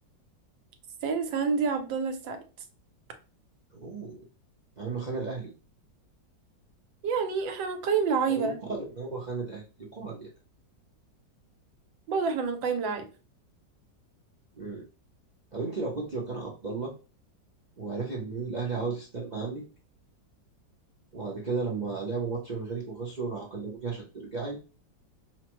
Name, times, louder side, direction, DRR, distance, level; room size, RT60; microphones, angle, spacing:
voice 1, 1.0-2.4 7.0-8.6 12.1-13.1, right 5 dB, 85° right, 7 dB, 1.5 m, -28 dB
voice 2, 3.8-4.2 4.8-5.5 8.3-8.5 8.9-10.3 14.6-14.9 15.5-16.9 17.8-19.6 21.1-24.6, right 4 dB, 60° right, -3 dB, 0.4 m, -34 dB
5.5 x 2.1 x 3.0 m, 0.34 s
omnidirectional pair, 2.0 m